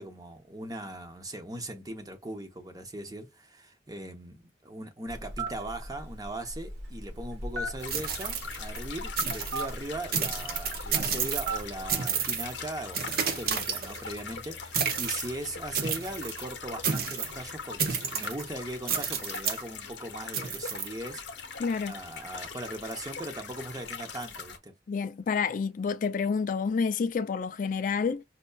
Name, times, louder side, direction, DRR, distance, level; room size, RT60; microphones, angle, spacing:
voice 1, 0.0-24.7, right 1 dB, 20° right, 0.7 m, -39 dB
Telephone, 5.1-11.9, right 2 dB, 90° right, 1.0 m, -38 dB
sound 1, 7.8-24.6, left 5 dB, 85° left, 0.8 m, -41 dB
sound 2, 7.8-8.8 9.2-9.7 10.1-11.6 11.9-12.5 12.9-14.2 14.7-15.3 15.7-16.4 16.8-17.4 17.8-18.4 18.9-19.6 20.3-20.9, right 7 dB, 55° right, 0.6 m, -31 dB
voice 2, 21.6-21.9 24.9-28.2, left 5 dB, 50° left, 0.3 m, -29 dB
5.3 x 2.1 x 2.3 m
head